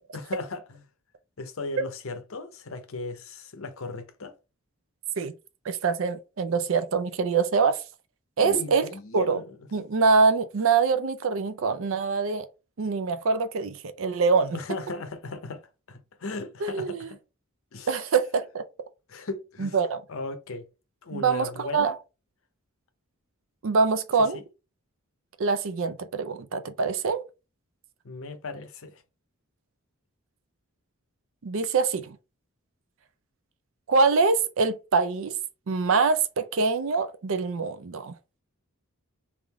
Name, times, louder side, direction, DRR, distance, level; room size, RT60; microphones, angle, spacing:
voice 1, 0.1-0.8 1.4-4.3 8.4-9.6 14.5-15.6 15.9-17.2 17.7-17.9 19.1-19.8 20.1-20.7 21.0-22.0 24.3-24.4 28.0-29.0, left 3 dB, 65° left, 0.7 m, -36 dB
voice 2, 5.6-7.8 8.4-9.4 9.7-12.5 12.8-14.6 16.6-17.1 17.9-18.6 19.6-20.0 21.1-21.9 23.6-24.4 25.4-27.2 31.4-32.2 33.9-35.4 35.7-38.1, right 4 dB, 65° right, 0.4 m, -24 dB
3.5 x 2.5 x 3.3 m
head